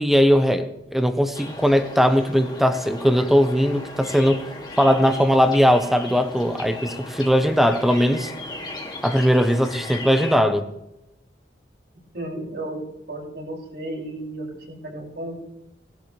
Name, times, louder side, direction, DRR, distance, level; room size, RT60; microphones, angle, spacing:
voice 1, 0.0-4.4 4.8-8.3 9.0-10.7, equal, ahead, 8 dB, 0.9 m, -19 dB
sound 1, 1.3-10.4, left 2 dB, 25° left, 2.4 m, -37 dB
voice 2, 12.1-12.8 13.1-15.4, right 1 dB, 65° right, -2 dB, 6.0 m, -33 dB
19.5 x 11.5 x 3.3 m, 0.89 s
head